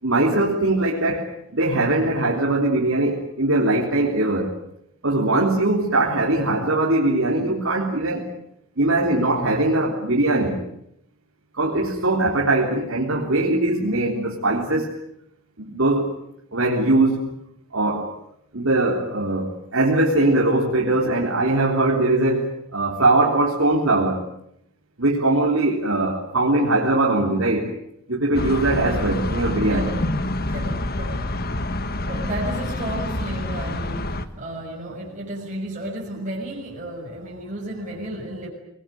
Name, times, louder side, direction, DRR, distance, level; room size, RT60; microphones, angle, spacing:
voice 1, 0.0-4.5 5.0-8.3 8.8-10.6 11.5-14.9 15.6-16.1 16.5-17.3 17.7-18.1 18.5-24.2 25.0-27.7 28.1-29.9, right 2 dB, 65° right, -3 dB, 3.8 m, -21 dB
sound 1, 28.3-34.2, left 1 dB, 45° left, 1.5 m, -27 dB
voice 2, 29.7-30.1 30.4-38.5, right 1 dB, 35° right, -3 dB, 6.6 m, -33 dB
27.5 x 20.5 x 9.3 m, 0.76 s
head